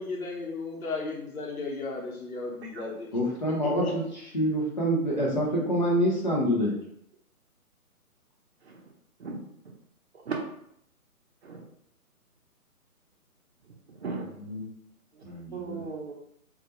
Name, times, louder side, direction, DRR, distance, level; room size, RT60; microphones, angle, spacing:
voice 1, 0.0-3.1 3.6-3.9, left 3 dB, 70° left, 0 dB, 0.8 m, -35 dB
voice 2, 3.1-6.8 14.4-14.6 15.2-15.8, equal, 35° left, -4 dB, 0.5 m, -27 dB
voice 3, 13.9-14.4 15.1-16.1, right 4 dB, 45° right, -1 dB, 0.6 m, -36 dB
2.2 x 2.1 x 2.8 m, 0.71 s
figure-of-eight pair, 145°, 45 cm